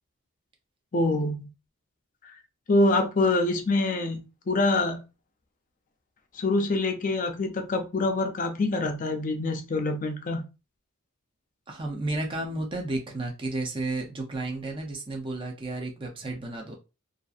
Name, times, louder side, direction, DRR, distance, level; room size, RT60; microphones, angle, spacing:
voice 1, 0.9-1.5 2.2-2.3 2.7-5.0 6.3-10.4, left 2 dB, 35° left, 0.4 m, -25 dB
voice 2, 11.7-16.8, right 2 dB, 25° right, 0.5 m, -32 dB
2.6 x 2.5 x 2.4 m
head